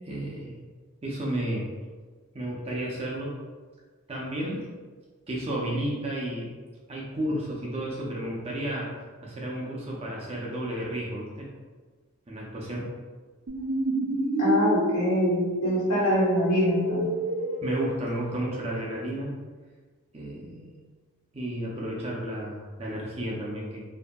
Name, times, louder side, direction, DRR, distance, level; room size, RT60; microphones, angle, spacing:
voice 1, 0.0-0.6 1.0-1.7 2.3-3.4 4.1-4.7 5.3-6.5 6.9-8.9 9.2-11.5 12.3-12.9 17.6-19.4 20.1-20.7 21.3-23.8, right 1 dB, 30° right, -4 dB, 0.5 m, -32 dB
sound 1, 13.5-18.8, right 1 dB, 80° right, 0.5 m, -29 dB
voice 2, 14.4-17.0, equal, 80° left, -8 dB, 1.2 m, -24 dB
2.7 x 2.6 x 2.2 m, 1.4 s
head